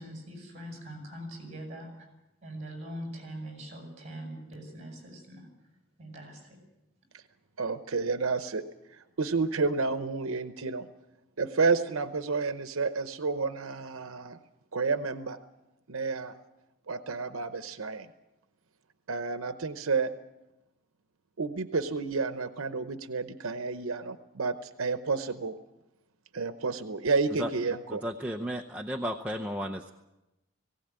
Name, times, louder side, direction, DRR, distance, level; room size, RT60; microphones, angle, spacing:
voice 1, 0.0-1.9 2.4-5.5 6.0-6.6, right 1 dB, 35° right, 2 dB, 7.4 m, -42 dB
voice 2, 7.6-8.6 8.9-10.9 11.4-14.4 14.7-15.4 15.9-16.3 16.9-18.1 19.1-20.1 21.4-25.5 26.3-28.0, right 4 dB, 90° right, 10 dB, 0.9 m, -30 dB
voice 3, 28.0-29.9, equal, 5° right, 1 dB, 0.7 m, -33 dB
19.0 x 17.5 x 8.9 m, 0.96 s
head